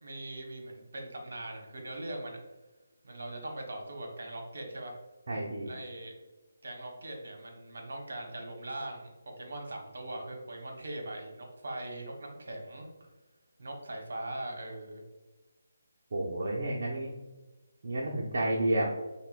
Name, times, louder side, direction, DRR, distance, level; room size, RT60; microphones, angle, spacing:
voice 1, 0.0-2.4 3.0-4.9 5.6-6.1 6.6-9.1 9.4-12.9 13.6-15.0, right 1 dB, 70° right, 2 dB, 0.9 m, -41 dB
voice 2, 5.3-5.7 16.1-17.1 17.8-18.8, right 1 dB, 55° right, -4 dB, 0.6 m, -30 dB
5.5 x 2.1 x 2.3 m, 1.2 s
figure-of-eight pair, 160°, 0 cm